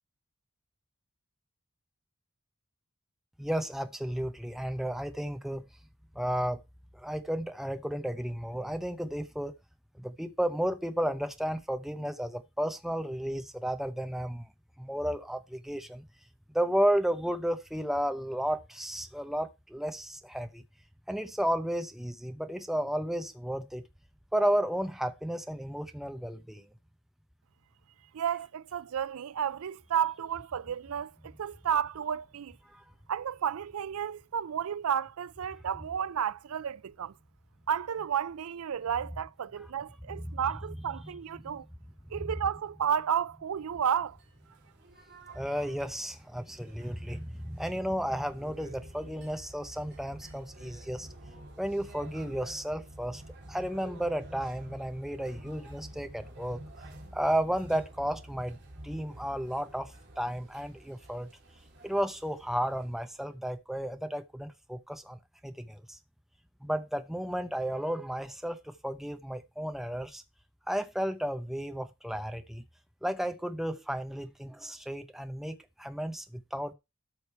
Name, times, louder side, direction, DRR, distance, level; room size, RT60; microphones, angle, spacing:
voice 1, 3.4-5.7 6.1-6.6 6.9-9.5 10.0-14.5 14.8-16.0 16.5-20.6 21.1-23.8 24.3-26.6 40.1-40.4 41.0-41.1 42.2-42.3 45.3-51.1 51.6-53.2 53.5-56.6 57.1-58.6 58.8-61.3 61.8-65.2 65.4-66.0 66.6-70.2 70.7-72.6 73.0-76.7, equal, ahead, 0.7 m, -33 dB
voice 2, 28.1-32.6 33.1-37.1 37.7-41.6 42.1-44.2, right 8 dB, 85° right, 0.4 m, -32 dB
sound 1, 44.1-63.3, right 1 dB, 50° right, 2.6 m, -49 dB
13.0 x 5.0 x 4.6 m
head